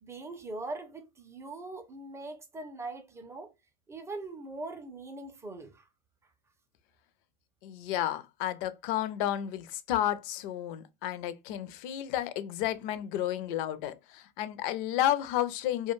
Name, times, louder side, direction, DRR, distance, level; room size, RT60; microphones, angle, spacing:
voice 1, 0.0-3.5 3.9-5.9, right 2 dB, 10° right, 0.4 m, -41 dB
voice 2, 7.6-15.9, left 12 dB, 55° left, 0.5 m, -31 dB
2.2 x 2.2 x 2.9 m
hypercardioid pair, 105°, 31 cm